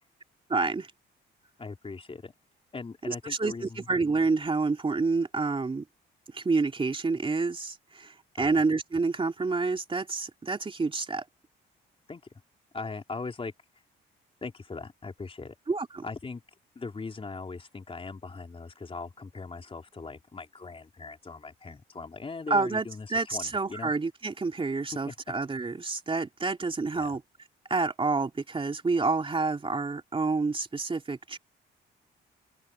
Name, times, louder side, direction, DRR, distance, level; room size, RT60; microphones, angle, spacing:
voice 1, 0.5-0.9 3.1-5.8 6.3-11.2 15.7-16.0 22.5-27.2 27.7-31.4, right 3 dB, 25° right, 2.9 m, -28 dB
voice 2, 1.6-2.3 2.7-3.9 8.4-8.6 12.1-12.2 12.7-13.5 14.4-15.5 16.0-16.4 16.8-23.9 25.0-25.2 26.9-27.2, left 4 dB, 30° left, 4.0 m, -40 dB
open air
cardioid pair, 90°, 20 cm